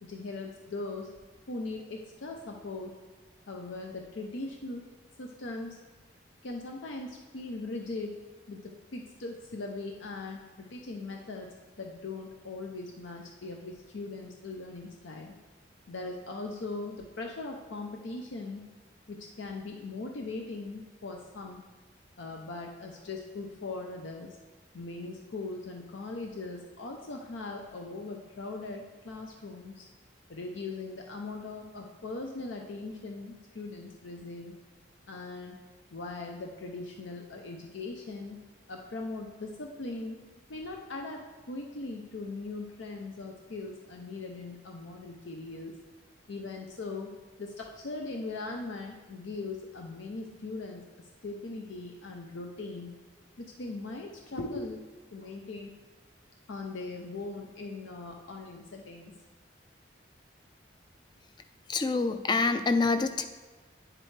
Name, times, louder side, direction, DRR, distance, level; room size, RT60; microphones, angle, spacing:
voice 1, 0.0-1.1 1.5-3.0 3.5-4.9 5.2-5.8 6.4-8.2 8.5-11.5 11.8-15.4 15.9-18.6 19.1-21.6 22.2-24.4 24.7-29.9 30.3-34.5 35.1-35.6 35.9-38.4 38.7-40.2 40.5-45.7 46.3-52.9 53.4-54.8 55.1-55.7 56.5-59.1, left 3 dB, 80° left, 2 dB, 0.6 m, -40 dB
voice 2, 61.7-63.2, left 3 dB, 25° left, 9 dB, 0.3 m, -26 dB
9.0 x 7.5 x 3.2 m, 1.3 s
head